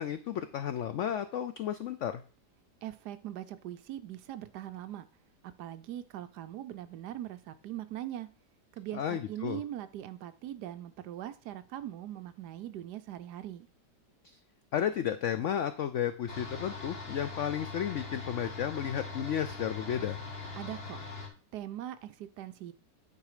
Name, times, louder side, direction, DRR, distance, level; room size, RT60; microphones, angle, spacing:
voice 1, 0.0-2.2 8.9-9.6 14.2-14.4 14.7-20.2, left 9 dB, 85° left, 0.6 m, -33 dB
voice 2, 2.8-5.1 5.6-8.3 8.7-13.7 20.5-21.0 21.5-22.7, right 12 dB, 75° right, 1.2 m, -41 dB
sound 1, 16.3-21.3, left 3 dB, 35° left, 1.8 m, -41 dB
9.4 x 4.5 x 4.9 m
omnidirectional pair, 1.9 m